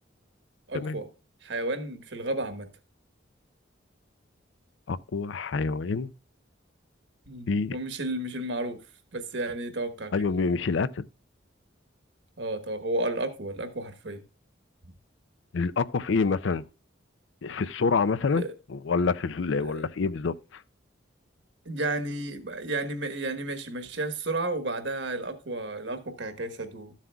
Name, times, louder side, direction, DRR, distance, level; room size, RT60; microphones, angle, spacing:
voice 1, 0.7-1.1 1.4-2.7 7.3-8.8 9.1-10.1 12.4-14.2 18.3-18.5 19.6-19.8 21.6-26.9, right 2 dB, 70° right, 1.3 m, -32 dB
voice 2, 4.9-6.1 7.5-7.8 10.1-11.0 15.5-16.7 17.4-18.4 18.7-20.6, left 4 dB, 75° left, 0.5 m, -27 dB
13.5 x 7.4 x 2.3 m
head